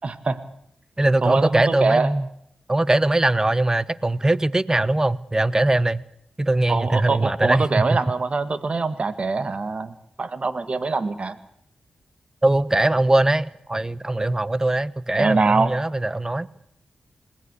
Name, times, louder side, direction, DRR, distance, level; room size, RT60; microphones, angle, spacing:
voice 1, 0.0-0.4 1.2-2.1 6.7-11.4 15.2-15.7, right 3 dB, 50° right, 12 dB, 1.9 m, -23 dB
voice 2, 1.0-2.3 2.7-6.0 6.4-7.7 7.9-8.0 12.4-16.5, right 2 dB, 25° right, 19 dB, 1.1 m, -21 dB
21.0 x 18.5 x 8.4 m, 0.73 s
supercardioid pair, 40°, 2 cm